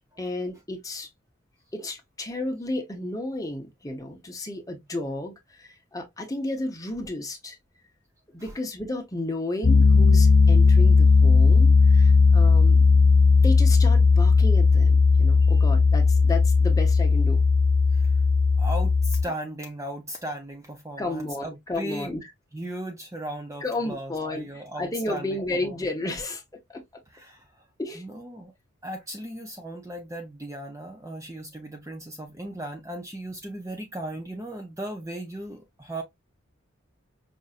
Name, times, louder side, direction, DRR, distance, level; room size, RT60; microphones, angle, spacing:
voice 1, 0.2-1.1 1.7-7.6 8.3-12.8 13.4-17.4 21.0-22.2 23.6-26.4 26.7-26.8 27.8-28.0, left 2 dB, 15° left, 0.9 m, -32 dB
Piano, 9.6-19.2, left 4 dB, 85° left, 0.9 m, -17 dB
voice 2, 18.6-22.2 22.5-25.8 27.1-27.4 27.9-28.5 28.8-36.0, right 1 dB, 15° right, 0.6 m, -37 dB
5.2 x 2.6 x 2.4 m
head